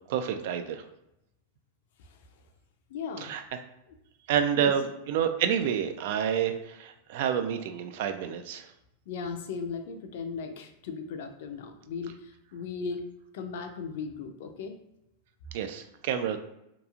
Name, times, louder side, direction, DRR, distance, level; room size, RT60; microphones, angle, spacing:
voice 1, 0.1-0.8 3.2-3.4 4.3-8.6 15.5-16.4, right 8 dB, 65° right, 8 dB, 0.4 m, -28 dB
voice 2, 2.9-3.3 4.5-4.7 9.1-13.0 13.3-14.8, left 5 dB, 70° left, 6 dB, 0.4 m, -37 dB
2.9 x 2.4 x 2.4 m, 0.84 s
hypercardioid pair, 120°, 0 cm